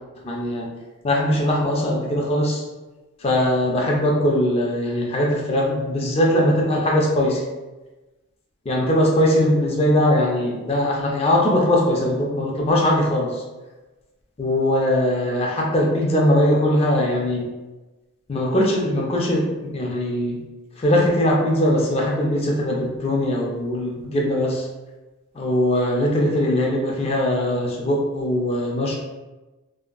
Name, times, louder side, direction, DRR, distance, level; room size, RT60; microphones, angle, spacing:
voice 1, 0.2-0.6 1.0-2.6 3.2-7.4 8.7-13.3 14.4-17.4 18.3-20.4 20.8-24.6 25.4-28.9, left 1 dB, 25° left, -2 dB, 0.4 m, -20 dB
2.7 x 2.5 x 2.2 m, 1.1 s
head